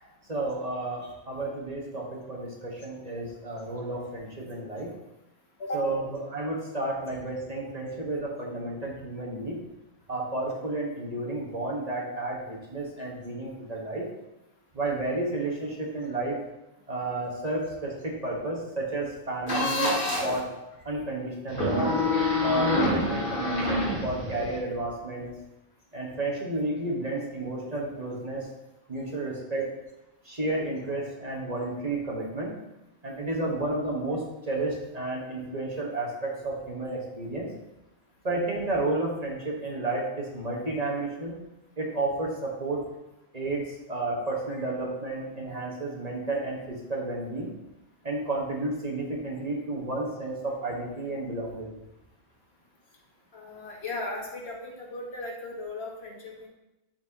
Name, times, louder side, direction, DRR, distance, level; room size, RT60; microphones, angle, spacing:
voice 1, 0.0-4.9 5.7-9.6 10.1-14.0 14.7-16.4 16.9-19.9 20.2-20.5 20.8-21.9 22.4-25.3 25.9-28.5 28.9-29.7 30.2-32.5 33.0-37.5 38.2-41.4 41.8-42.8 43.3-47.5 48.0-51.7, right 2 dB, 35° right, -2 dB, 1.5 m, -31 dB
sound 1, 19.5-20.4 21.5-24.6, left 2 dB, 55° left, 2.1 m, -26 dB
voice 2, 53.3-56.5, left 2 dB, 70° left, -1 dB, 1.6 m, -36 dB
12.5 x 4.5 x 2.9 m, 0.96 s
omnidirectional pair, 1.1 m